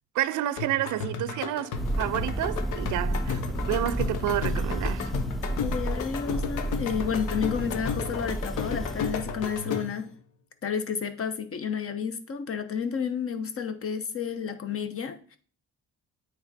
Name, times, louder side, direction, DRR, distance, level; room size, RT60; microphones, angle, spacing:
voice 1, 0.1-3.4 3.7-5.1, right 13 dB, 80° right, 0.5 m, -29 dB
sound 1, 0.6-10.1, left 6 dB, 90° left, 0.8 m, -34 dB
Thunder, 1.7-9.6, right 1 dB, ahead, 0.3 m, -32 dB
voice 2, 5.6-10.1 10.6-15.4, left 7 dB, 50° left, 1.0 m, -31 dB
8.6 x 3.5 x 4.1 m
cardioid pair, 90°, 30 cm